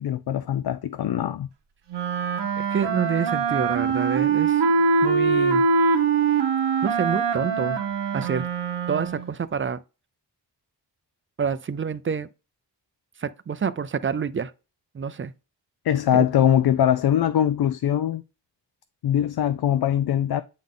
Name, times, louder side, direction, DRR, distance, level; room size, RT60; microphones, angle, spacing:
voice 1, 0.0-1.5 15.8-18.2 19.0-20.4, left 10 dB, 65° left, 0.5 m, -22 dB
Wind instrument woodwind instrument, 1.9-9.3, right 5 dB, 85° right, 1.2 m, -23 dB
voice 2, 2.6-4.6 5.0-5.6 6.8-7.8 8.1-8.5 8.9-9.8 11.4-12.3 13.2-14.5 14.9-15.3 16.1-16.3, right 6 dB, 30° right, 0.4 m, -27 dB
8.7 x 3.8 x 3.7 m
wide cardioid pair, 135°, 41 cm